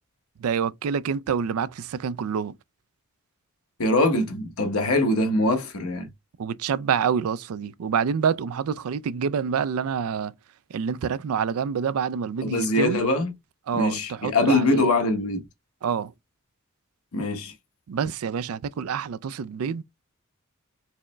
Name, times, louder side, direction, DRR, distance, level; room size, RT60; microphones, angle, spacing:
voice 1, 0.4-2.5 6.4-10.3 10.7-13.0 13.7-14.9 15.8-16.1 17.9-19.8, right 7 dB, 80° right, 0.4 m, -27 dB
voice 2, 3.8-6.1 12.4-13.3 13.7-15.4 17.1-17.5, left 2 dB, 85° left, 1.1 m, -23 dB
4.7 x 3.1 x 2.2 m
head